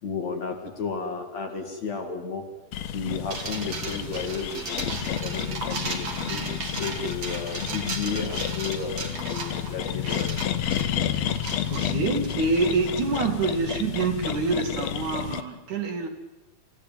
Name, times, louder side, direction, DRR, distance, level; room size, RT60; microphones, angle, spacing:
voice 1, 0.0-2.4 2.9-6.4 6.8-10.3, left 5 dB, 50° left, 3 dB, 3.1 m, -33 dB
sound 1, 2.7-15.4, left 10 dB, 75° left, 1.5 m, -31 dB
sound 2, 3.3-12.8, right 4 dB, 35° right, 2.6 m, -36 dB
voice 2, 11.7-16.1, right 4 dB, 55° right, 4 dB, 3.4 m, -26 dB
27.0 x 15.5 x 9.2 m, 1.1 s
omnidirectional pair, 4.4 m